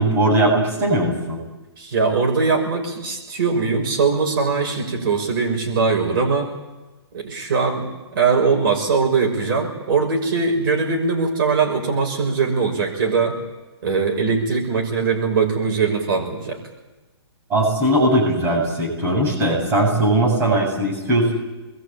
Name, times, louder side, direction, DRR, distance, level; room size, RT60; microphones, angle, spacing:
voice 1, 0.0-1.4 17.5-21.3, right 1 dB, 15° right, -3 dB, 7.4 m, -19 dB
voice 2, 1.8-6.5 7.1-13.3 13.8-16.6, right 4 dB, 50° right, 1 dB, 6.4 m, -21 dB
27.0 x 22.0 x 8.8 m, 1.1 s
hypercardioid pair, 160°, 14 cm